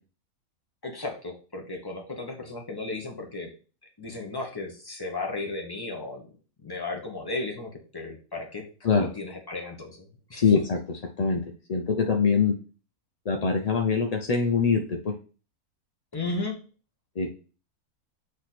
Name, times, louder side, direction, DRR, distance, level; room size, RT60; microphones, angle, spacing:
voice 1, 0.8-3.5 4.0-6.3 6.6-8.7 8.9-10.5 16.1-16.6, left 3 dB, 15° left, 1 dB, 1.2 m, -35 dB
voice 2, 10.4-11.4 11.7-12.5 13.3-15.1 17.2-17.3, left 5 dB, 50° left, 3 dB, 0.4 m, -24 dB
8.3 x 3.1 x 4.2 m, 0.37 s
omnidirectional pair, 1.5 m